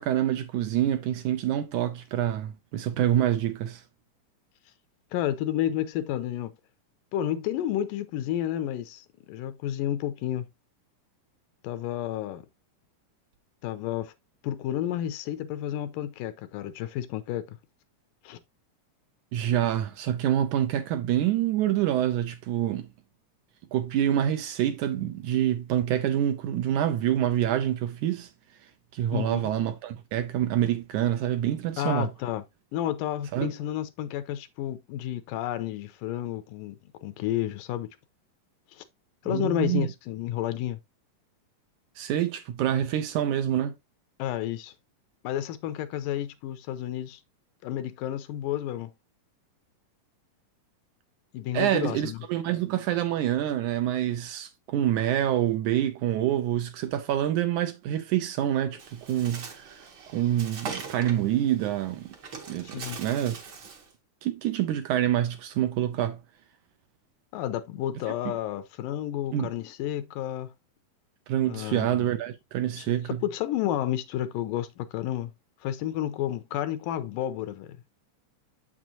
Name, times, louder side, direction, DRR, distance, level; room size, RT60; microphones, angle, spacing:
voice 1, 0.0-3.8 19.3-22.9 23.7-28.3 28.9-32.1 33.3-33.5 39.3-39.9 42.0-43.7 51.5-59.8 60.1-62.1 62.5-63.4 64.2-66.2 69.3-69.5 71.3-73.2, right 11 dB, 75° right, 2.0 m, -26 dB
voice 2, 5.1-6.5 7.1-10.5 11.6-12.4 13.6-14.1 14.4-17.6 18.3-18.4 29.1-29.4 31.8-32.4 32.7-37.9 38.7-38.8 39.2-40.8 44.2-44.7 45.2-47.2 47.6-48.9 51.3-52.2 62.6-63.0 67.3-70.5 71.5-72.1 72.8-72.9 73.2-75.3 75.6-77.8, left 12 dB, 85° left, 2.3 m, -31 dB
Bird, 58.8-63.9, right 5 dB, 50° right, 1.5 m, -42 dB
7.6 x 6.2 x 2.7 m
omnidirectional pair, 3.9 m